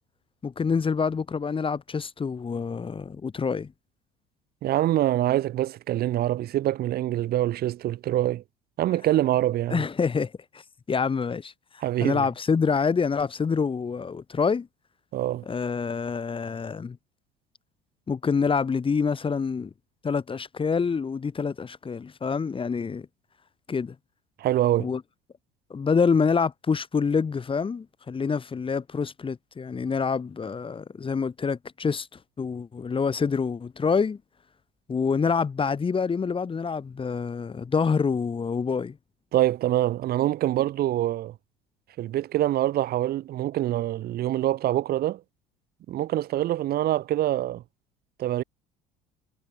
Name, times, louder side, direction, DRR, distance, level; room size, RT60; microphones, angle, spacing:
voice 1, 0.4-3.7 9.7-10.6 10.9-11.5 12.0-14.7 15.5-17.0 18.1-19.7 20.0-23.1 23.7-24.0 24.8-25.0 25.7-32.1 32.4-34.2 34.9-39.0, left 5 dB, 30° left, 3.6 m, -26 dB
voice 2, 4.6-8.4 8.8-9.8 11.8-12.3 15.1-15.4 24.4-24.9 39.3-41.4 42.0-45.2 45.9-47.6 48.2-48.4, right 13 dB, 55° right, 7.8 m, -25 dB
hypercardioid pair, 70°, 19 cm